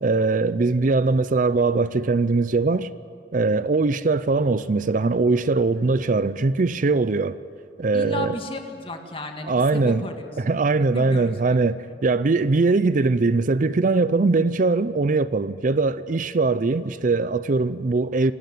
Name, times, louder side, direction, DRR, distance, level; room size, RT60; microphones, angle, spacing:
voice 1, 0.0-2.9 3.3-7.4 7.8-8.4 9.5-10.1 10.4-18.3, right 3 dB, 45° right, 0.5 m, -21 dB
voice 2, 7.9-10.3 10.9-11.3 11.9-12.0, left 1 dB, 30° left, 1.9 m, -34 dB
26.5 x 12.5 x 9.2 m
head